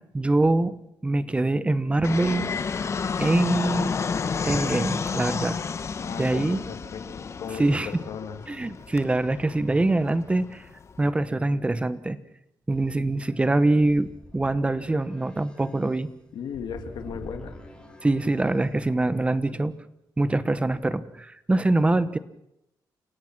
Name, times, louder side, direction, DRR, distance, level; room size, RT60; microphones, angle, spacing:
voice 1, 0.1-0.8 1.0-2.5 3.2-3.9 4.4-5.6 6.2-6.6 7.5-7.9 8.5-10.6 11.0-12.2 12.7-16.1 18.0-19.8 20.2-22.2, right 2 dB, 15° right, 14 dB, 1.1 m, -24 dB
Fixed-wing aircraft airplane, 2.0-11.1, left 5 dB, 40° left, 1.1 m, -31 dB
voice 2, 6.0-8.4 16.3-17.6, left 6 dB, 80° left, 7 dB, 2.2 m, -36 dB
sound 1, 12.7-19.4, left 1 dB, 15° left, 5.2 m, -47 dB
29.5 x 17.0 x 6.1 m, 0.81 s
cardioid pair, 120°, 7 cm